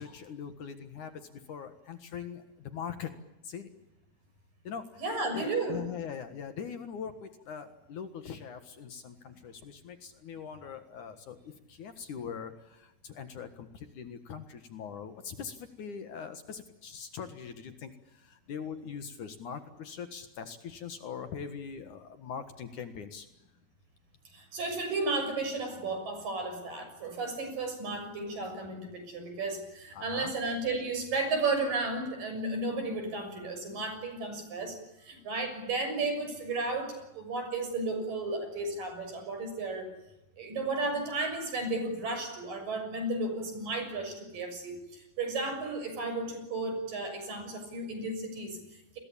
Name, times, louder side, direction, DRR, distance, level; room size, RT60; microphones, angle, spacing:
voice 1, 0.0-3.1 3.4-3.7 4.6-5.0 5.3-23.3 29.9-30.3, left 7 dB, 60° left, 9 dB, 2.7 m, -42 dB
voice 2, 5.0-5.8 24.3-39.9 40.4-49.0, right 3 dB, 60° right, 7 dB, 8.1 m, -33 dB
29.0 x 22.0 x 8.7 m, 0.95 s
omnidirectional pair, 4.4 m